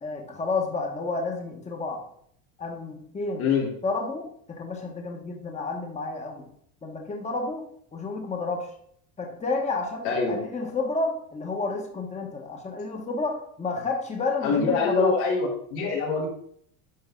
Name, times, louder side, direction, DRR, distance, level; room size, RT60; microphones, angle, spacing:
voice 1, 0.0-2.1 2.6-3.4 3.8-6.5 6.8-8.7 9.2-15.2, left 3 dB, 15° left, 2 dB, 1.3 m, -30 dB
voice 2, 3.4-3.7 10.0-10.4 14.4-16.3, left 5 dB, 80° left, -3 dB, 3.7 m, -25 dB
11.0 x 4.7 x 3.8 m, 0.65 s
supercardioid pair, 110°, 43 cm